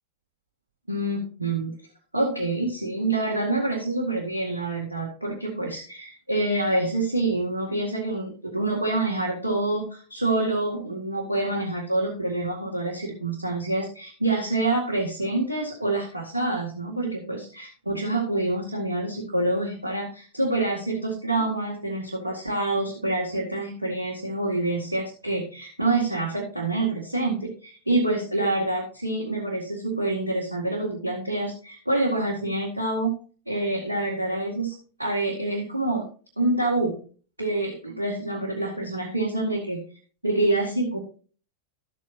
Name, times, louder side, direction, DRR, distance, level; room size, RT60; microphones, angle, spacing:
voice 1, 0.9-1.7 2.1-33.1 33.5-34.7 35.0-36.0 36.4-37.0 37.4-39.8 40.2-41.0, right 2 dB, 85° right, -3 dB, 2.0 m, -27 dB
12.5 x 8.4 x 2.7 m, 0.38 s
figure-of-eight pair, 90°, 0 cm